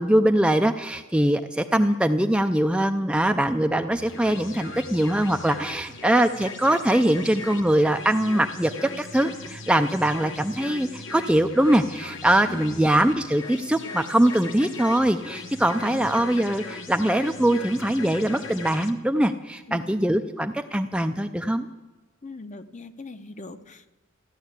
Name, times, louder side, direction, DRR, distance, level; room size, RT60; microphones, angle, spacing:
voice 1, 0.0-21.7, right 1 dB, 5° right, 6 dB, 0.4 m, -22 dB
sound 1, 3.9-18.9, left 3 dB, 60° left, 1.2 m, -39 dB
voice 2, 12.5-12.9 15.8-16.1 19.7-19.9 22.2-23.9, left 2 dB, 35° left, 10 dB, 0.8 m, -40 dB
15.0 x 11.0 x 8.1 m, 1.2 s
head